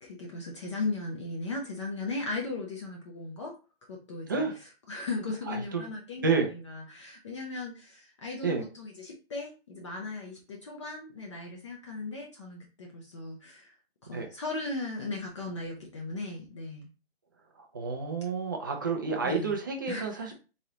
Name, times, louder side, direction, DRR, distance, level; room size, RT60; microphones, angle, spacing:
voice 1, 0.0-3.5 3.9-13.7 14.0-16.9 19.2-19.6 19.9-20.3, left 3 dB, 30° left, -1 dB, 0.7 m, -37 dB
voice 2, 5.5-5.8 6.2-6.5 8.4-8.6 14.1-14.3 17.7-20.3, right 4 dB, 20° right, 2 dB, 0.4 m, -29 dB
3.8 x 3.2 x 2.8 m, 0.33 s
hypercardioid pair, 155°, 31 cm